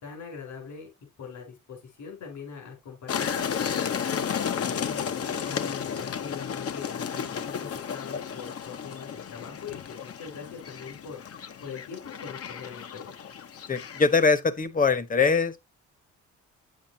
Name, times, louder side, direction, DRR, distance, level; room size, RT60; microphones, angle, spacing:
voice 1, 0.0-0.9 1.2-4.2 4.6-11.2 11.6-13.1, left 6 dB, 70° left, 4.4 m, -42 dB
sound 1, 3.1-14.3, left 7 dB, 50° left, 1.0 m, -33 dB
voice 2, 13.7-15.6, left 4 dB, 25° left, 1.2 m, -22 dB
8.5 x 7.5 x 2.8 m
cardioid pair, 90°, 30 cm